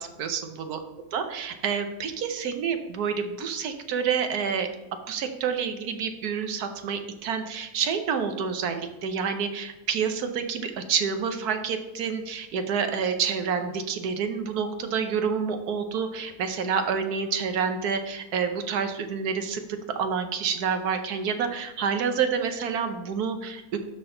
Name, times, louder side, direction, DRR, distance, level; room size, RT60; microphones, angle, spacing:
voice 1, 0.0-0.8 1.1-4.7 5.1-23.8, right 6 dB, 80° right, 7 dB, 1.3 m, -28 dB
12.5 x 4.3 x 3.8 m, 1.1 s
omnidirectional pair, 1.6 m